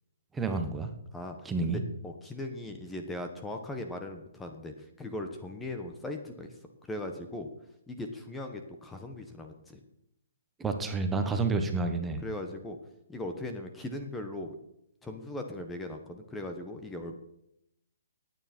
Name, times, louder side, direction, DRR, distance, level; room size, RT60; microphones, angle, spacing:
voice 1, 0.3-0.9 1.4-1.8 10.6-12.2, right 3 dB, 10° right, 6 dB, 1.3 m, -29 dB
voice 2, 1.6-6.6 6.9-7.5 7.9-9.8 11.5-11.7 12.2-12.8 13.1-14.5 15.0-17.2, left 1 dB, 10° left, 4 dB, 1.2 m, -39 dB
16.0 x 9.4 x 4.4 m, 0.80 s
hypercardioid pair, 145°, 0 cm